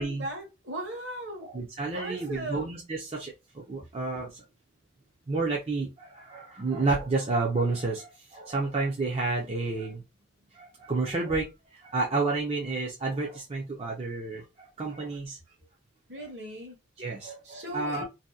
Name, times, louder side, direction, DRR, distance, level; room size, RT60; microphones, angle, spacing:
voice 1, 0.0-1.5 1.9-2.7 16.1-16.8 17.4-18.0, right 1 dB, 60° right, 1.0 m, -38 dB
voice 2, 1.4-4.4 5.3-10.0 10.5-15.4 17.0-18.0, right 3 dB, 30° right, 0.4 m, -30 dB
2.7 x 2.1 x 2.3 m
head